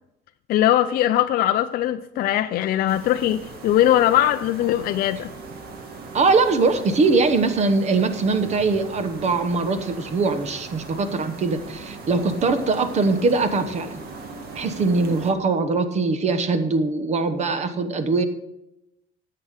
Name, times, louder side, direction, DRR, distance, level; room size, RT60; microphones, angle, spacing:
voice 1, 0.5-5.3, left 12 dB, 45° left, 0.4 m, -20 dB
sound 1, 2.9-15.3, right 3 dB, 50° right, 1.9 m, -39 dB
voice 2, 6.1-14.0 14.5-18.2, right 3 dB, 35° right, 1.0 m, -22 dB
10.5 x 7.7 x 6.4 m
cardioid pair, 155°, 21 cm